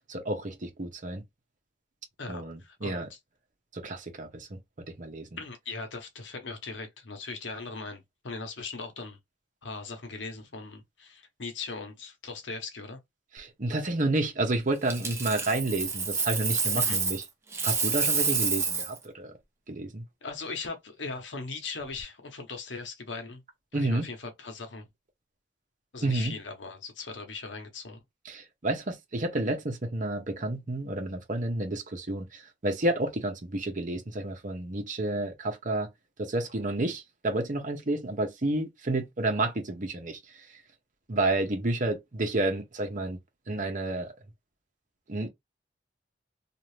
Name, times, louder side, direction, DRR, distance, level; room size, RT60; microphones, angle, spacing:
voice 1, 0.1-1.2 2.3-3.1 3.7-4.6 4.9-5.3 13.3-17.2 17.6-19.3 19.7-20.0 23.7-24.1 26.0-26.4 28.2-35.9 36.2-40.2 41.1-43.2 43.5-44.1 45.1-45.3, right 2 dB, 45° right, 0.8 m, -30 dB
voice 2, 2.2-3.0 5.4-9.2 9.6-13.0 16.7-17.0 20.2-23.4 23.7-24.8 25.9-28.0, left 4 dB, 90° left, 0.9 m, -39 dB
Coin (dropping), 14.9-17.3 17.5-19.0 21.8-22.0, right 5 dB, 15° right, 0.7 m, -28 dB
2.7 x 2.5 x 3.2 m
head